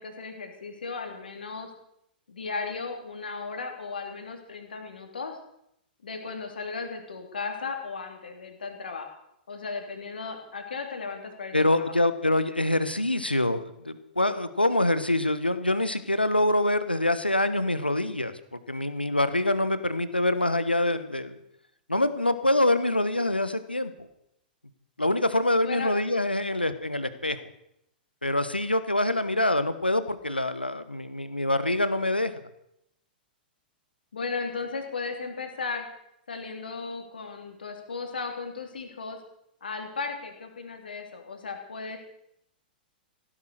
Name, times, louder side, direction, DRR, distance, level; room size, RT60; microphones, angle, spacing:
voice 1, 0.0-1.7 2.3-5.4 6.0-9.1 9.5-11.9 25.6-25.9 34.1-35.9 36.3-39.2 39.6-42.0, left 4 dB, 70° left, 4 dB, 3.2 m, -35 dB
voice 2, 11.5-21.3 21.9-24.1 25.0-27.4 28.2-32.3, left 1 dB, 90° left, 12 dB, 1.2 m, -25 dB
16.0 x 10.5 x 6.6 m, 0.78 s
figure-of-eight pair, 105°, 5 cm